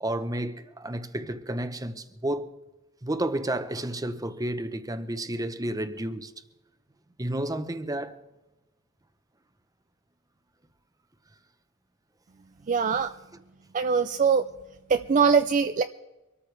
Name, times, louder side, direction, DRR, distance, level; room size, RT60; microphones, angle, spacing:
voice 1, 0.0-2.5 3.0-6.3 7.2-8.2, right 1 dB, 15° right, 0.8 m, -31 dB
voice 2, 12.7-13.1 13.7-14.4 14.9-15.8, right 5 dB, 35° right, 0.4 m, -22 dB
24.5 x 13.5 x 3.3 m
head